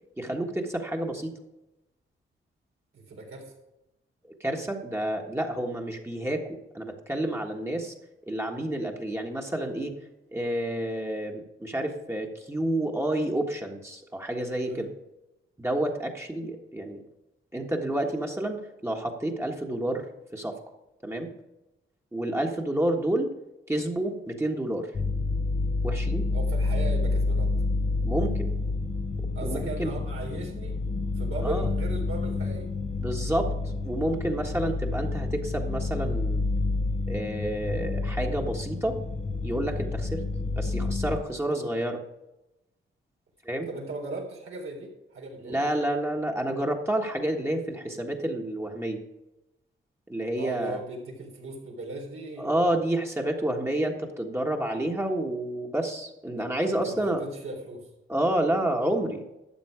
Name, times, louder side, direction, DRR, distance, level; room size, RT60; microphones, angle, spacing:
voice 1, 0.2-1.3 4.4-7.9 8.3-9.9 10.3-14.9 15.6-17.0 17.5-20.0 20.3-20.6 21.0-21.3 22.1-23.3 23.7-24.9 25.8-26.2 28.0-28.5 29.4-29.9 31.4-31.7 33.0-36.5 37.1-39.0 39.4-40.2 40.5-42.0 43.4-43.7 45.4-49.0 50.1-50.8 52.4-57.2 58.1-59.2, right 1 dB, 10° right, 1 dB, 1.5 m, -29 dB
voice 2, 2.9-3.5 14.6-14.9 26.3-27.5 29.3-30.8 31.2-32.7 43.7-45.6 50.3-52.7 56.8-57.9, right 2 dB, 80° right, -1 dB, 3.8 m, -37 dB
sound 1, 24.9-41.2, left 3 dB, 30° left, 0.8 m, -29 dB
12.5 x 7.9 x 5.0 m, 0.94 s
cardioid pair, 100°, 21 cm